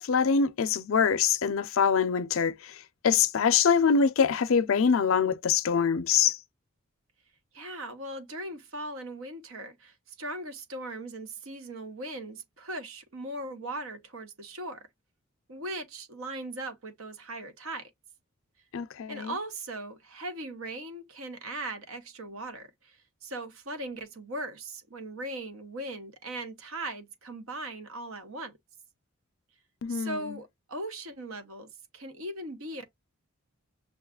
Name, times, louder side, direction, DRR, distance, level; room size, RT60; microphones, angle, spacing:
voice 1, 0.0-6.4 18.7-19.3 29.8-30.4, left 6 dB, 70° left, 0.4 m, -24 dB
voice 2, 7.5-14.8 15.5-17.9 19.1-28.6 29.9-32.8, right 2 dB, 75° right, 0.9 m, -39 dB
6.2 x 2.3 x 2.3 m
head